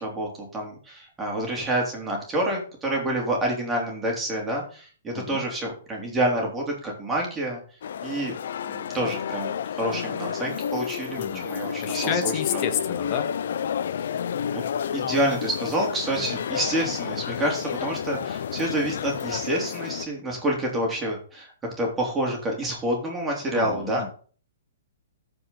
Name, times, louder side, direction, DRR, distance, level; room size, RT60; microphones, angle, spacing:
voice 1, 0.0-7.6 8.0-8.4 8.6-12.6 14.5-14.6 14.9-21.5 21.8-24.1, right 1 dB, 15° right, -1 dB, 3.5 m, -28 dB
sound 1, 7.8-20.1, left 8 dB, 65° left, 0.6 m, -31 dB
voice 2, 11.8-13.3 16.2-16.4 23.5-24.1, left 7 dB, 40° left, 7 dB, 1.9 m, -30 dB
14.0 x 5.3 x 4.1 m, 0.41 s
hypercardioid pair, 135°, 0 cm